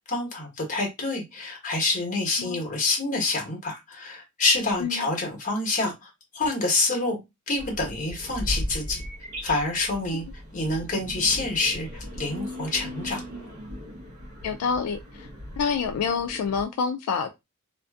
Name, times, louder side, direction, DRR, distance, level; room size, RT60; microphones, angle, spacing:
voice 1, 0.0-7.2 7.5-9.0 9.4-10.2 10.5-13.2, left 3 dB, 35° left, 1.1 m, -27 dB
sound 1, 7.6-16.6, equal, 70° right, 0.9 m, -37 dB
voice 2, 14.4-15.3 15.6-17.3, left 6 dB, 75° left, 0.3 m, -27 dB
2.5 x 2.4 x 2.3 m
head